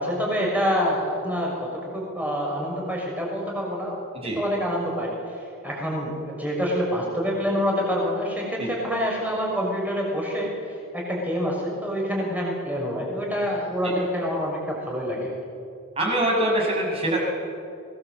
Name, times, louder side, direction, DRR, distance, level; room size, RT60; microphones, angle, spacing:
voice 1, 0.0-10.5 10.9-15.3, equal, 5° right, -2 dB, 6.5 m, -27 dB
voice 2, 16.0-17.2, right 1 dB, 25° right, -2 dB, 6.3 m, -23 dB
24.5 x 19.0 x 8.0 m, 2.5 s
head